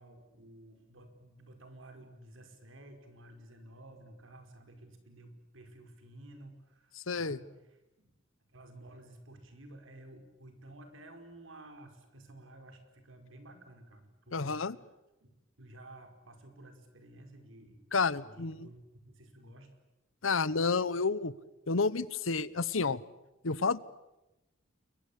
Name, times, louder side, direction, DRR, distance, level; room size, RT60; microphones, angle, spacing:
voice 1, 0.0-8.1 8.5-14.6 15.2-15.3 15.6-17.8 18.2-19.7, right 1 dB, 75° right, 6 dB, 5.0 m, -53 dB
voice 2, 7.1-7.4 14.3-14.8 17.9-18.6 20.2-21.3 21.7-23.0 23.4-23.8, left 4 dB, 80° left, 18 dB, 1.0 m, -30 dB
30.0 x 22.5 x 8.6 m, 0.97 s
head